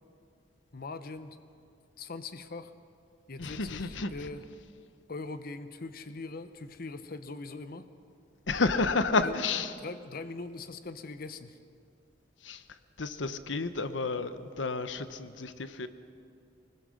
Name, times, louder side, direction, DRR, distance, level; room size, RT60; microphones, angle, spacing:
voice 1, 0.7-1.4 2.0-2.7 3.3-4.4 5.1-7.9 9.2-9.3 9.8-11.6, left 3 dB, 55° left, 10 dB, 0.8 m, -41 dB
voice 2, 3.4-4.3 8.5-9.8 12.4-15.9, left 3 dB, 90° left, 11 dB, 1.0 m, -31 dB
24.5 x 20.5 x 6.4 m, 2.3 s
head